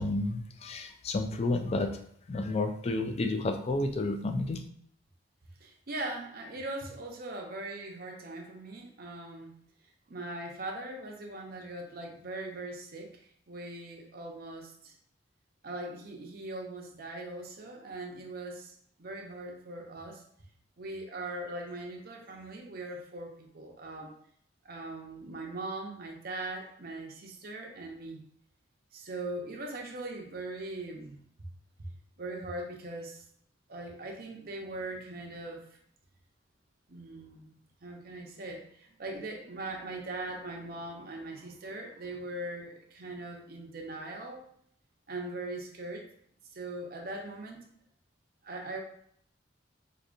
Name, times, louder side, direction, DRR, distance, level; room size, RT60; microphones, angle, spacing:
voice 1, 0.0-2.0 2.3-4.6, left 2 dB, 35° left, 6 dB, 0.3 m, -31 dB
voice 2, 5.6-9.5 10.1-13.1 13.5-14.9 15.6-20.2 20.8-24.1 24.6-28.2 28.9-31.2 31.8-31.9 32.2-33.2 33.7-35.6 36.9-37.5 37.8-44.4 45.1-46.1 46.5-47.6 48.4-48.8, right 2 dB, 50° right, 1 dB, 0.7 m, -40 dB
4.9 x 2.6 x 2.5 m, 0.65 s
head